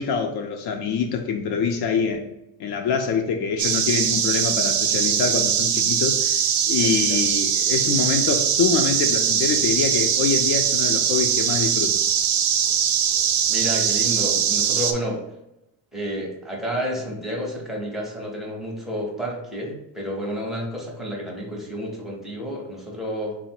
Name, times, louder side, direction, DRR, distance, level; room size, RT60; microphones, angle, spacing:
voice 1, 0.0-2.2 2.6-11.9, left 6 dB, 60° left, 4 dB, 0.5 m, -25 dB
sound 1, 3.6-14.9, right 8 dB, 50° right, 0.5 m, -21 dB
voice 2, 6.8-7.3 13.5-15.2 15.9-23.4, equal, ahead, -3 dB, 0.6 m, -30 dB
3.8 x 2.0 x 4.3 m, 0.88 s
cardioid pair, 160°, 46 cm